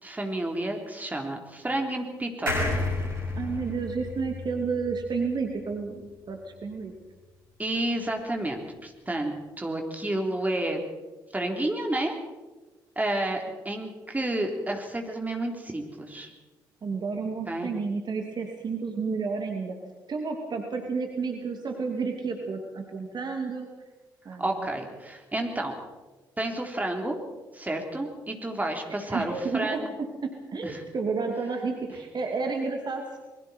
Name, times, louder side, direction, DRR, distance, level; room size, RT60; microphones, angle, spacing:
voice 1, 0.0-2.8 7.6-10.8 11.3-12.2 13.0-16.3 17.5-17.7 24.4-25.7 26.4-27.2 27.5-29.8 30.6-30.8, right 1 dB, 15° right, 2 dB, 3.9 m, -30 dB
sound 1, 2.5-5.9 6.3-6.4 6.6-6.7, left 2 dB, 85° right, 5.0 m, -31 dB
voice 2, 3.3-6.9 16.8-19.8 20.1-23.7 24.2-24.7 29.1-33.2, right 4 dB, 40° right, 3 dB, 2.6 m, -31 dB
29.0 x 21.5 x 4.5 m, 1.2 s
figure-of-eight pair, 45°, 11 cm